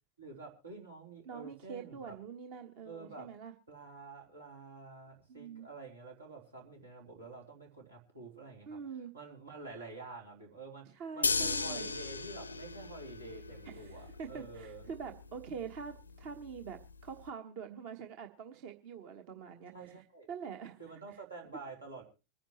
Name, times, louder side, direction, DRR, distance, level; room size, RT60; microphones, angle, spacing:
voice 1, 0.2-2.1 2.8-3.3 3.7-8.8 9.1-14.9 19.7-20.3 20.8-22.0, right 3 dB, 80° right, -1 dB, 3.6 m, -49 dB
voice 2, 1.2-3.5 5.3-5.7 8.7-9.1 10.9-11.9 13.6-20.8 21.1-21.2, right 6 dB, 45° right, 5 dB, 1.2 m, -45 dB
sound 1, 11.2-17.3, left 4 dB, 75° left, 0.6 m, -38 dB
25.5 x 10.0 x 3.1 m, 0.30 s
figure-of-eight pair, 90°, 0 cm